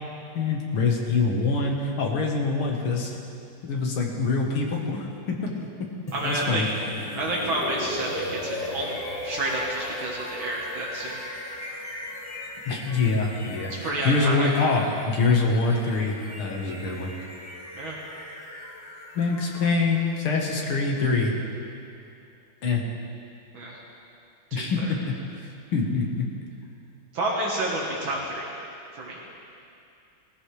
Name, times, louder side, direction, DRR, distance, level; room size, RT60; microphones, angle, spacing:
voice 1, 0.3-3.2 3.6-5.4 6.2-6.7 12.7-17.1 19.2-21.3 22.6-22.8 24.5-26.3, left 4 dB, 80° left, 1 dB, 2.3 m, -25 dB
sound 1, 6.1-22.0, left 1 dB, 25° left, 0.9 m, -38 dB
voice 2, 6.1-6.6 7.1-9.0 9.2-11.2 13.8-14.5 17.8-18.0 23.5-23.8 24.5-24.9 27.1-28.5 28.9-29.2, right 1 dB, 70° right, -4 dB, 2.3 m, -29 dB
19.0 x 14.0 x 3.4 m, 2.6 s
omnidirectional pair, 2.3 m